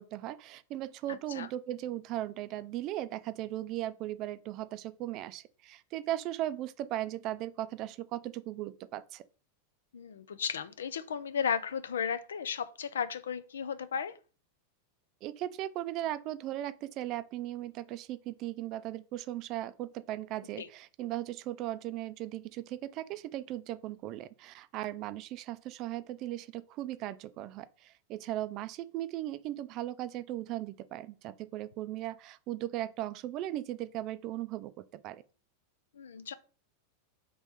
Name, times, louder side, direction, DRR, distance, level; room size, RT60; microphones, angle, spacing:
voice 1, 0.0-9.2 15.2-35.2, right 14 dB, 45° right, 0.3 m, -37 dB
voice 2, 9.9-14.2 20.6-20.7 35.9-36.3, left 7 dB, 85° left, 0.4 m, -34 dB
4.0 x 3.0 x 3.5 m
hypercardioid pair, 105°, 0 cm